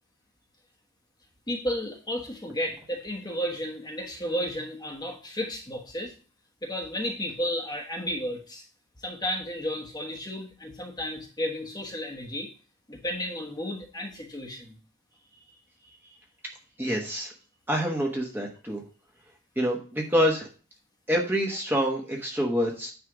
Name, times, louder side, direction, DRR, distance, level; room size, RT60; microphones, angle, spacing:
voice 1, 1.5-6.1 6.6-8.6 9.0-12.5 12.9-14.8, equal, 20° left, 0 dB, 1.2 m, -33 dB
voice 2, 16.8-17.3 17.7-18.8 19.6-20.4 21.1-22.9, equal, 10° right, -1 dB, 1.1 m, -26 dB
9.5 x 3.3 x 4.8 m, 0.36 s
head